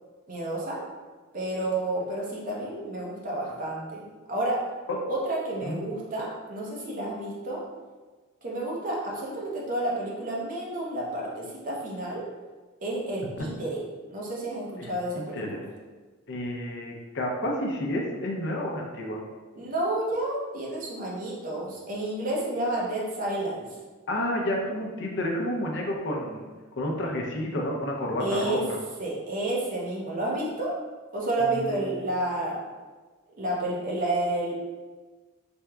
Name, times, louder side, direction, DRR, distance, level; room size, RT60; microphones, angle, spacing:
voice 1, 0.3-0.8 1.3-4.0 4.3-4.6 5.1-7.6 8.4-12.2 12.8-13.8 14.1-15.4 19.5-23.7 28.2-28.7 29.0-30.8 31.1-32.6 33.4-34.6, right 1 dB, 40° right, -4 dB, 0.6 m, -30 dB
voice 2, 14.8-15.6 16.3-19.2 24.1-26.5 26.8-28.8 31.4-31.9, left 1 dB, 55° left, 0 dB, 0.5 m, -30 dB
3.4 x 2.8 x 2.3 m, 1.3 s
head